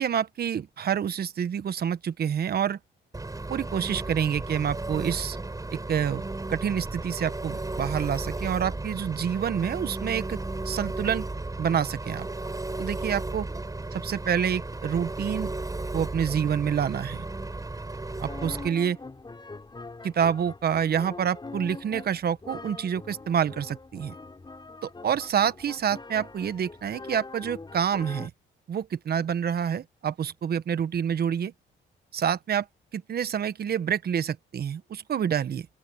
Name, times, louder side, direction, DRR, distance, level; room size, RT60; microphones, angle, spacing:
voice 1, 0.0-2.8 3.5-5.4 5.7-6.2 6.5-10.4 10.6-11.3 11.6-12.3 12.8-13.5 13.9-15.5 15.9-17.2 18.2-19.0 20.0-24.1 24.8-28.3 28.7-31.5 32.1-32.7 32.9-35.7, right 8 dB, 50° right, 1.2 m, -27 dB
Engine, 3.1-18.7, right 2 dB, 15° right, 6.8 m, -34 dB
sound 1, 18.1-28.3, left 3 dB, 20° left, 5.4 m, -43 dB
open air
cardioid pair, 90°, 20 cm